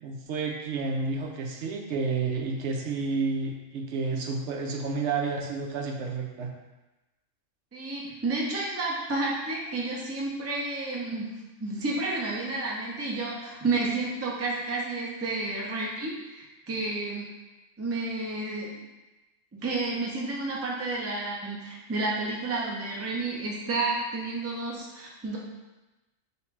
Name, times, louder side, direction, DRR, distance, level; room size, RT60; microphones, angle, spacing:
voice 1, 0.0-6.5, right 4 dB, 70° right, 1 dB, 0.8 m, -30 dB
voice 2, 7.7-11.3 11.6-17.3 17.8-18.7 19.5-25.4, right 3 dB, 20° right, -3 dB, 0.4 m, -31 dB
3.1 x 3.0 x 4.5 m, 1.1 s
omnidirectional pair, 1.3 m